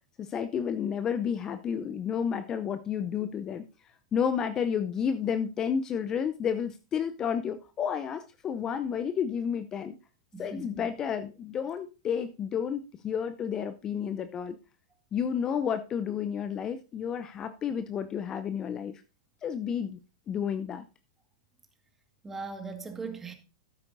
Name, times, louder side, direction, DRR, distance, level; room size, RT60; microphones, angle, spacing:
voice 1, 0.2-3.6 4.1-9.9 10.4-14.6 15.1-19.0 19.4-20.0 20.3-20.8, left 7 dB, 25° left, 0.6 m, -31 dB
voice 2, 10.3-10.9 22.2-23.3, right 4 dB, 15° right, 1.8 m, -39 dB
12.5 x 9.7 x 2.6 m
figure-of-eight pair, 100°, 2 cm